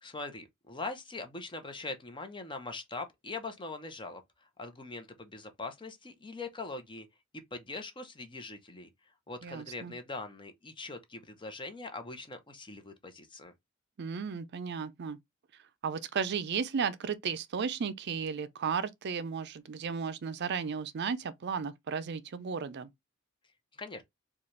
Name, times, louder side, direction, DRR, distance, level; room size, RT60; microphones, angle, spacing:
voice 1, 0.0-7.1 7.3-8.9 9.3-13.5 23.7-24.0, left 3 dB, 25° left, 0.8 m, -42 dB
voice 2, 9.4-9.9 14.0-15.2 15.8-22.9, right 6 dB, 55° right, 0.4 m, -34 dB
4.2 x 2.4 x 3.1 m
head